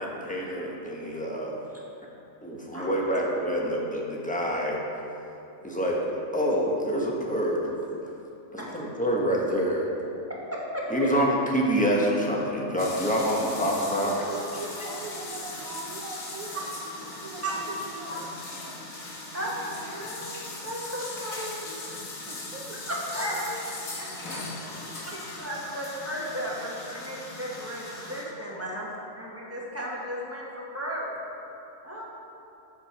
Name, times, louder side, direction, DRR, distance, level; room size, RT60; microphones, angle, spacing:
voice 1, 0.0-1.6 2.4-4.8 5.6-6.0 6.3-7.6 8.5-9.9 10.9-14.1, equal, 5° left, -3 dB, 1.1 m, -26 dB
voice 2, 10.5-10.9 16.5-16.6 17.4-17.5 18.1-18.2 19.3-21.8 22.9-23.6 24.0-24.4 24.7-28.9 29.1-31.1 31.8-32.0, equal, 10° right, -5 dB, 1.3 m, -35 dB
sound 1, 12.8-28.2, left 2 dB, 75° left, 1.8 m, -39 dB
voice 3, 13.9-16.7 17.2-18.9 22.3-23.7 24.8-25.3 26.9-27.1 28.7-28.9, right 2 dB, 75° right, -2 dB, 1.2 m, -42 dB
10.5 x 6.9 x 4.3 m, 2.8 s
omnidirectional pair, 1.5 m